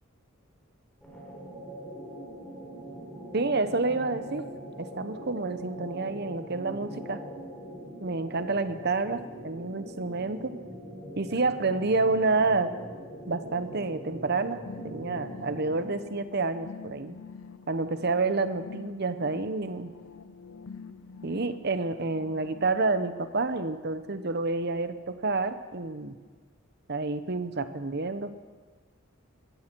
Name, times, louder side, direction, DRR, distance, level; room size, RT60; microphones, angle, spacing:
sound 1, 1.0-16.1, right 1 dB, 5° left, 4.4 m, -42 dB
voice 1, 3.3-4.4 4.8-7.2 8.0-10.5 11.2-12.7 13.3-17.2 17.7-19.9 21.2-26.1 26.9-28.3, right 3 dB, 55° right, 11 dB, 1.0 m, -29 dB
sound 2, 14.7-22.6, left 5 dB, 85° left, 0.6 m, -46 dB
20.5 x 15.0 x 4.6 m, 1.4 s
head